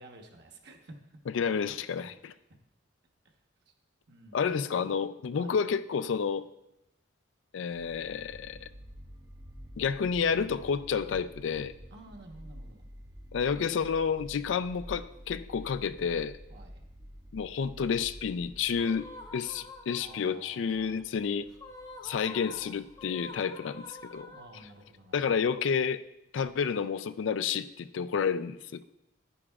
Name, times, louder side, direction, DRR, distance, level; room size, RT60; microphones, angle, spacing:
voice 1, 0.0-1.2 2.0-2.2 3.2-3.4 3.7-3.8 4.1-4.4 5.3-5.6 11.9-12.8 16.5-16.8 20.0-21.0 22.0-22.8 24.3-25.5 26.3-26.7, right 2 dB, 60° right, 1.1 m, -52 dB
voice 2, 1.3-2.3 4.3-6.5 7.5-8.7 9.8-11.7 13.3-16.4 17.3-21.5 22.0-24.3 25.1-26.0 26.3-28.8, left 6 dB, 75° left, 0.4 m, -30 dB
sound 1, 7.7-24.7, equal, 15° right, 0.5 m, -50 dB
sound 2, 18.8-20.4 21.5-24.9, left 2 dB, 20° left, 0.8 m, -47 dB
9.9 x 9.8 x 2.4 m
head